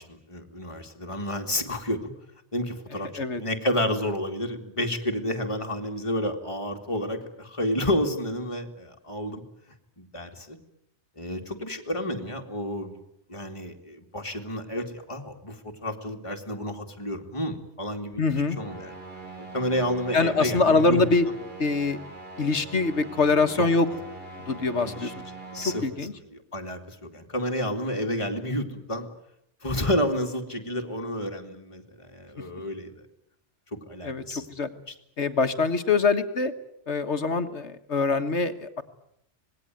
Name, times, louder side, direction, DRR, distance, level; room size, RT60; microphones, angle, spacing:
voice 1, 0.0-2.1 2.5-9.4 10.0-10.6 11.2-12.9 13.3-18.2 18.6-18.9 19.4-21.0 23.6-23.7 24.8-25.1 25.5-25.8 26.3-29.1 29.6-33.1 33.7-34.5 34.9-35.0, left 1 dB, 25° left, 3 dB, 2.5 m, -30 dB
voice 2, 18.2-18.6 20.1-21.3 21.6-22.0 22.4-23.9 24.5-25.1 25.8-26.1 34.0-34.2 34.6-34.7 35.2-36.5 36.9-38.8, left 3 dB, 70° left, 9 dB, 1.8 m, -24 dB
sound 1, 18.5-25.8, right 2 dB, 55° right, 6.2 m, -42 dB
26.0 x 20.0 x 9.2 m, 0.76 s
omnidirectional pair, 1.2 m